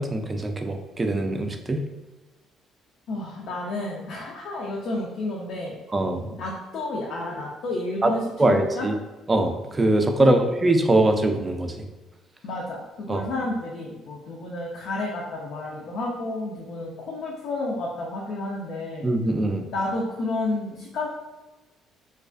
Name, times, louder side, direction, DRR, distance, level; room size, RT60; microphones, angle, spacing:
voice 1, 0.0-1.8 5.9-6.3 8.0-8.1 8.4-8.9 9.3-11.8 13.1-13.2 19.0-19.6, right 2 dB, 25° right, 5 dB, 0.3 m, -22 dB
voice 2, 3.1-5.7 6.3-8.9 10.3-10.4 12.4-19.0 19.7-21.1, left 2 dB, 65° left, -3 dB, 0.4 m, -31 dB
2.3 x 2.2 x 2.3 m, 1.1 s
hypercardioid pair, 55°, 0 cm